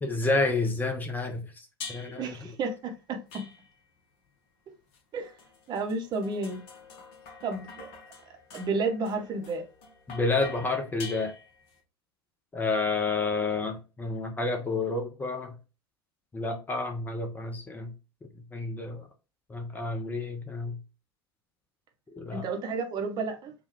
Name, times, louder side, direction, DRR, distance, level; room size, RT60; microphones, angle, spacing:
voice 1, 0.0-2.4 10.1-11.3 12.5-15.5 16.3-17.9 18.5-19.0 19.5-20.8 22.1-22.5, left 3 dB, 15° left, 0.6 m, -30 dB
sound 1, 1.8-2.4 3.3-4.0 4.9-11.8, left 4 dB, 45° left, 1.0 m, -46 dB
voice 2, 2.2-3.4 5.1-5.3 5.7-6.6 7.4-7.9 8.5-9.6 22.3-23.5, right 3 dB, 30° right, 0.8 m, -31 dB
3.6 x 2.2 x 3.3 m
figure-of-eight pair, 85°, 13 cm